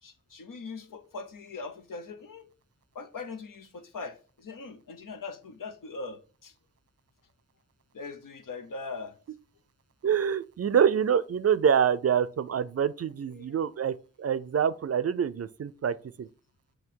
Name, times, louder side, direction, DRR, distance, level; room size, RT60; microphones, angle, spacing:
voice 1, 0.0-2.5 2.9-6.5 7.9-9.2 13.2-13.5, left 4 dB, 85° left, 0.9 m, -41 dB
voice 2, 10.0-16.3, right 8 dB, 50° right, 0.5 m, -26 dB
7.2 x 3.1 x 4.6 m
wide cardioid pair, 85°, 32 cm